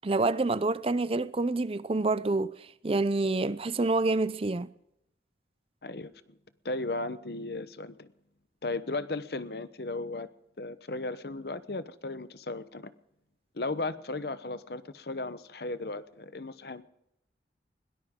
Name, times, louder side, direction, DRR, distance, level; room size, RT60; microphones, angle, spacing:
voice 1, 0.0-2.5 2.8-4.7, right 3 dB, 30° right, 0.5 m, -27 dB
voice 2, 5.8-6.4 6.6-8.1 8.6-10.3 10.6-12.9 13.5-16.8, left 2 dB, 60° left, 0.9 m, -36 dB
21.5 x 18.5 x 3.7 m
head